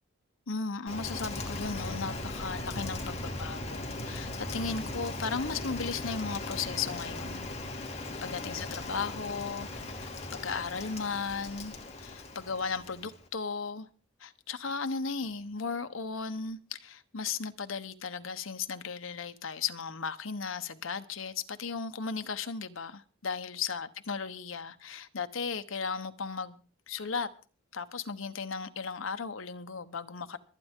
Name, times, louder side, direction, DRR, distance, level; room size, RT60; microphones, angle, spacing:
voice 1, 0.5-7.5 8.2-11.7 12.0-13.9 14.2-26.6 26.9-27.3 27.7-30.4, left 5 dB, 80° left, 1.0 m, -36 dB
Rain, 0.9-13.3, left 2 dB, 30° left, 2.6 m, -38 dB
25.0 x 9.2 x 3.7 m
head